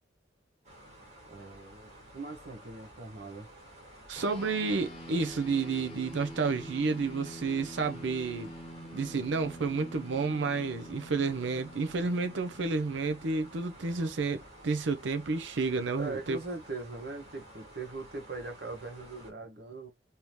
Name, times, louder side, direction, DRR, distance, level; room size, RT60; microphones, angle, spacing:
sound 1, 0.6-19.3, right 1 dB, 35° right, 1.8 m, -52 dB
voice 1, 1.3-3.5 8.8-8.9 16.0-19.9, right 3 dB, 55° right, 1.0 m, -41 dB
voice 2, 4.1-8.5 8.9-16.4, right 4 dB, 75° right, 0.5 m, -30 dB
sound 2, 4.2-13.9, equal, 30° left, 0.8 m, -47 dB
3.5 x 2.8 x 3.1 m
head